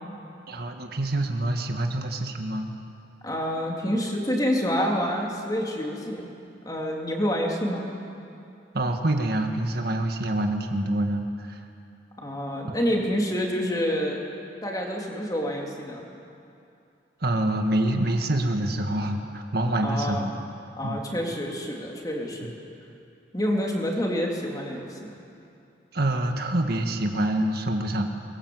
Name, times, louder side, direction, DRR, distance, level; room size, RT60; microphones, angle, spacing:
voice 1, 0.5-2.7 8.7-11.6 17.2-20.3 20.8-21.0 22.4-22.5 25.9-28.1, right 1 dB, 60° right, 4 dB, 1.8 m, -26 dB
voice 2, 3.2-6.3 6.6-7.9 12.2-14.2 14.6-16.0 19.8-20.2 20.8-22.5 23.3-25.2, equal, 20° left, -1 dB, 3.3 m, -27 dB
24.0 x 21.5 x 8.0 m, 2.6 s
head